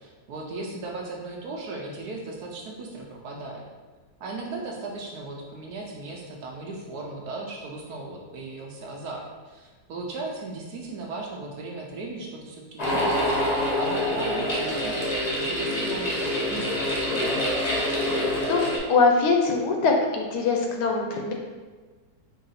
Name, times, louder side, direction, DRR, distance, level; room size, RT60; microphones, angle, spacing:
voice 1, 0.0-3.6 4.2-17.6, right 2 dB, 70° right, 0 dB, 1.1 m, -37 dB
sound 1, 12.8-18.8, left 1 dB, 35° left, 0.6 m, -26 dB
voice 2, 18.9-21.3, left 4 dB, 75° left, 2 dB, 1.1 m, -22 dB
4.7 x 2.6 x 4.0 m, 1.4 s
omnidirectional pair, 1.9 m